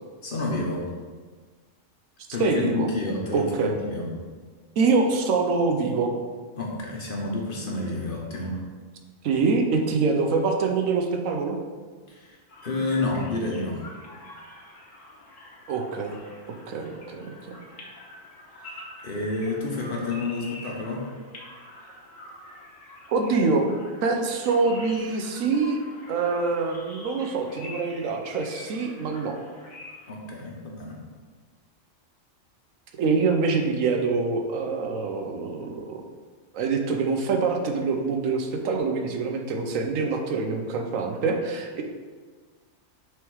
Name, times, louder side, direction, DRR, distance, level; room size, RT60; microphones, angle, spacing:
voice 1, 0.2-0.8 2.3-4.1 6.6-8.6 12.1-13.8 18.6-21.0 30.1-31.0, left 2 dB, 45° left, -2 dB, 1.1 m, -30 dB
voice 2, 2.4-2.9 3.3-3.7 4.8-6.1 9.2-11.6 15.7-16.2 16.5-17.3 23.1-23.7 24.0-25.8 26.1-29.4 33.0-36.0 36.5-41.8, right 4 dB, 85° right, 4 dB, 1.1 m, -25 dB
sound 1, 12.5-30.1, left 1 dB, 75° left, 1.5 m, -46 dB
6.2 x 3.5 x 4.6 m, 1.5 s
omnidirectional pair, 1.3 m